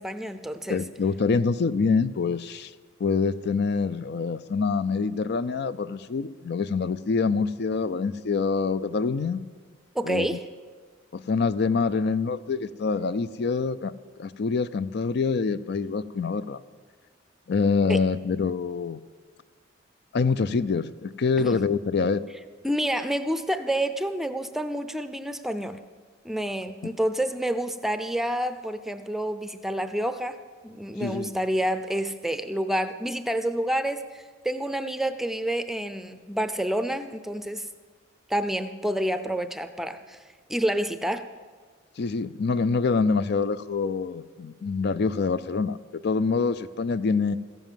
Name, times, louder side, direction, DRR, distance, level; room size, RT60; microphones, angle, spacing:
voice 1, 0.0-0.8 9.9-10.4 17.9-18.0 21.4-21.6 22.6-25.8 26.2-30.4 30.6-37.7 38.3-40.2 40.5-41.3, right 1 dB, ahead, 10 dB, 0.5 m, -28 dB
voice 2, 0.7-2.7 3.0-9.4 10.0-10.3 11.1-13.9 14.2-16.6 17.5-19.0 20.1-22.2 31.0-31.3 42.0-47.4, left 4 dB, 55° left, 15 dB, 0.4 m, -25 dB
14.5 x 11.0 x 7.4 m, 1.5 s
head